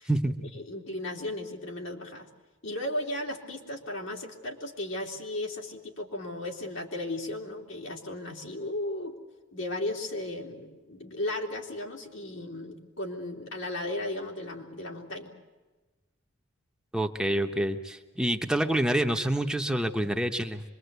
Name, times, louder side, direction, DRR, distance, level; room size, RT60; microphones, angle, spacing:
voice 1, 0.5-2.3 2.6-9.2 9.5-15.3, left 1 dB, 70° left, 1 dB, 3.0 m, -35 dB
voice 2, 16.9-20.6, right 1 dB, 5° right, 3 dB, 1.0 m, -27 dB
25.0 x 22.0 x 8.1 m, 1.2 s
head